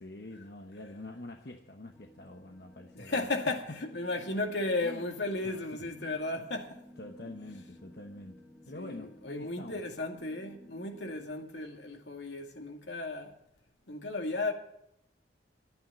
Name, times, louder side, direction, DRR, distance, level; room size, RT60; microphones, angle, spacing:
voice 1, 0.0-3.3 3.7-3.8 4.8-5.1 5.4-6.2 7.0-9.8, left 2 dB, 60° left, 1.0 m, -46 dB
sound 1, 1.9-11.5, equal, 5° left, 1.5 m, -56 dB
voice 2, 2.9-6.8 8.7-13.4 13.9-14.5, left 2 dB, 80° left, 2.3 m, -35 dB
11.5 x 9.4 x 9.5 m
head